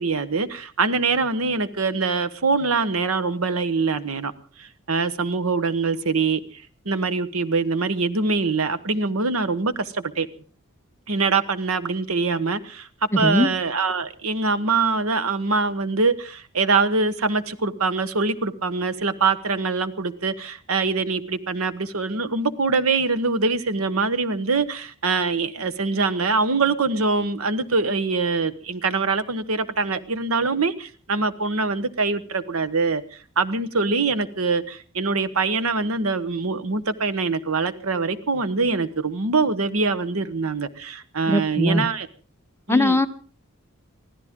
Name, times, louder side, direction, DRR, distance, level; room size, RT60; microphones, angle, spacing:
voice 1, 0.0-4.3 4.6-6.4 6.8-10.3 11.1-12.9 13.2-33.0 33.4-42.1 42.7-43.1, right 4 dB, 80° right, 1.1 m, -24 dB
voice 2, 13.1-13.5 41.3-41.9 42.7-43.1, left 1 dB, 10° left, 0.8 m, -20 dB
24.0 x 15.5 x 3.7 m
head